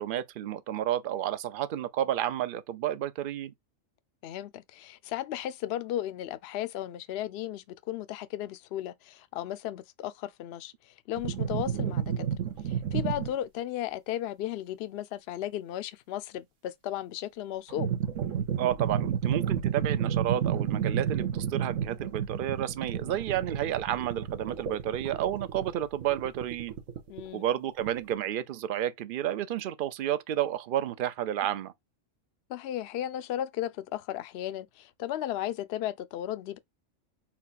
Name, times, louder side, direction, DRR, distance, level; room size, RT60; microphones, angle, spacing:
voice 1, 0.0-3.5 18.6-26.7 27.3-31.7, right 11 dB, 60° right, 0.6 m, -31 dB
voice 2, 4.2-12.2 12.7-17.9 27.1-27.4 32.5-36.6, left 12 dB, 65° left, 0.7 m, -35 dB
sound 1, 11.2-13.3 17.7-27.3 27.8-28.2, right 9 dB, 80° right, 1.3 m, -31 dB
4.4 x 2.4 x 4.0 m
omnidirectional pair, 1.3 m